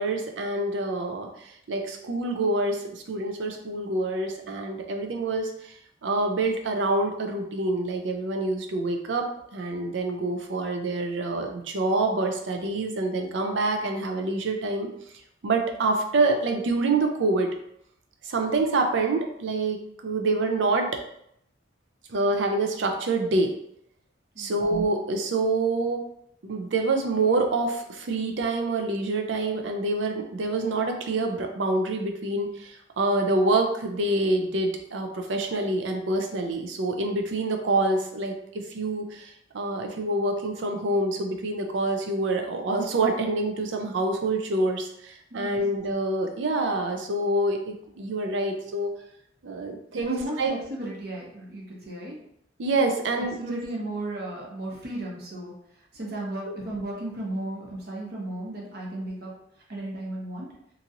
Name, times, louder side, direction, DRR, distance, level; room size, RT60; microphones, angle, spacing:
voice 1, 0.0-5.7 6.0-14.9 15.4-17.5 18.2-20.9 22.1-23.5 24.4-26.0 26.4-48.9 49.4-50.5 52.6-53.4 56.5-56.6, right 2 dB, 80° right, 3 dB, 0.5 m, -26 dB
voice 2, 49.9-52.2 53.4-55.5 55.9-59.3 59.7-60.5, right 1 dB, 55° right, -3 dB, 0.8 m, -34 dB
2.9 x 2.6 x 2.5 m, 0.74 s
head